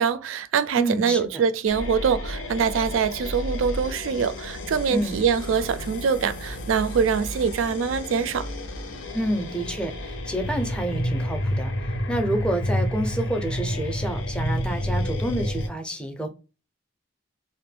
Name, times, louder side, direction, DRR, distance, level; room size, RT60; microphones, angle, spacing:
voice 1, 0.0-8.5, right 6 dB, 85° right, 0.4 m, -24 dB
voice 2, 0.8-1.4 4.9-5.2 9.1-11.7 12.1-16.3, right 1 dB, 5° left, 0.5 m, -28 dB
sound 1, 1.7-15.7, equal, 75° left, 0.5 m, -30 dB
2.5 x 2.1 x 3.2 m
head